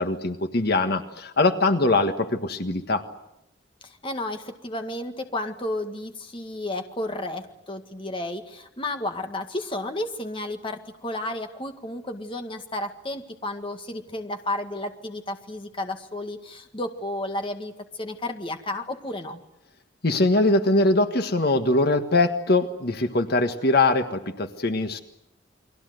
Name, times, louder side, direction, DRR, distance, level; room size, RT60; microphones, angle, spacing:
voice 1, 0.0-3.0 20.0-25.0, left 2 dB, 55° left, 8 dB, 1.5 m, -22 dB
voice 2, 3.8-19.4, left 1 dB, 30° left, 6 dB, 1.8 m, -32 dB
29.5 x 22.5 x 7.9 m, 0.85 s
head